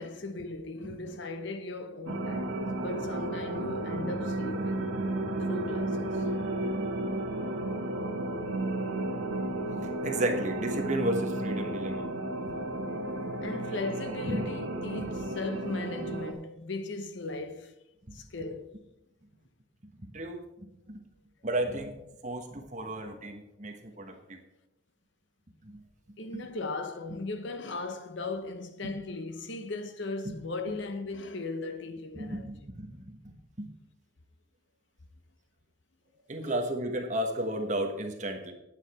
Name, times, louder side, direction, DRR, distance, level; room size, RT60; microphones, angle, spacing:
voice 1, 0.0-4.9 5.5-6.2 12.3-17.7 18.1-18.8 26.2-32.5 36.4-36.6, left 3 dB, 60° left, 0.8 m, -38 dB
sound 1, 2.1-16.3, right 1 dB, 85° right, 1.3 m, -33 dB
voice 2, 10.0-12.1 12.5-12.6 13.0-13.3 14.3-14.4 15.0-15.1 18.1-18.2 20.0-21.0 21.4-21.9 22.2-24.4 25.6-25.8 26.3-26.4 30.7-30.8 32.1-33.7 36.3-38.5, right 1 dB, 35° right, 1.3 m, -33 dB
9.7 x 8.9 x 4.4 m
head